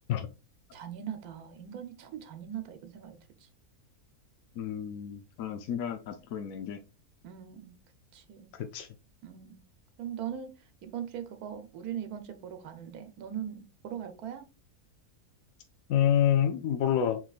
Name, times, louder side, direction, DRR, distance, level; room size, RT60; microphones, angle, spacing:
voice 1, 0.7-3.5 7.2-7.8 8.1-8.5 9.2-9.6 10.0-14.4, right 9 dB, 90° right, 1.3 m, -40 dB
voice 2, 4.6-6.8 8.6-8.9 15.9-17.2, left 9 dB, 70° left, 1.0 m, -28 dB
4.7 x 3.8 x 2.4 m
omnidirectional pair, 1.5 m